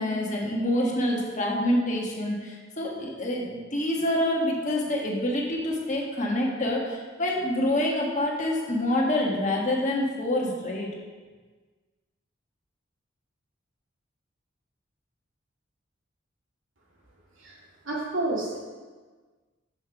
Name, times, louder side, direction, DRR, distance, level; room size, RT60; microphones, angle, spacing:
voice 1, 0.0-10.9, left 1 dB, 40° left, -1 dB, 1.4 m, -27 dB
voice 2, 17.9-18.6, right 2 dB, 85° right, -3 dB, 2.1 m, -29 dB
6.4 x 5.8 x 5.7 m, 1.4 s
head